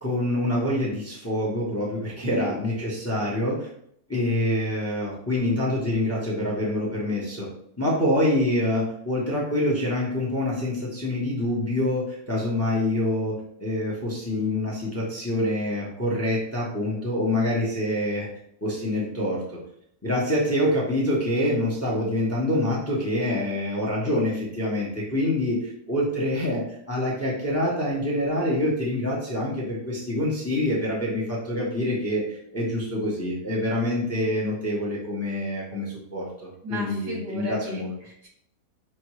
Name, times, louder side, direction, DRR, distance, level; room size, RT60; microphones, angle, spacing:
voice 1, 0.0-3.7 4.1-7.5 7.8-18.3 18.6-19.6 20.0-37.9, left 1 dB, 10° left, -4 dB, 0.8 m, -26 dB
voice 2, 2.2-2.5 36.6-38.3, right 1 dB, 85° right, -3 dB, 2.1 m, -34 dB
5.5 x 2.6 x 3.1 m, 0.69 s
omnidirectional pair, 1.7 m